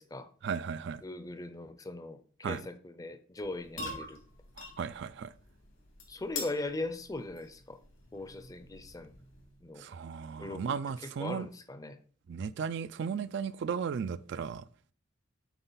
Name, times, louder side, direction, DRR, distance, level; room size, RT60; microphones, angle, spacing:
voice 1, 0.4-1.0 2.4-2.6 4.6-5.3 9.8-11.5 12.3-14.6, right 6 dB, 55° right, 0.3 m, -35 dB
voice 2, 1.0-4.2 6.1-7.8 8.1-9.1 9.6-9.9 10.4-12.0, left 2 dB, 15° left, 0.5 m, -40 dB
sound 1, 3.4-9.8, left 3 dB, 85° left, 2.5 m, -46 dB
8.1 x 4.4 x 3.9 m
head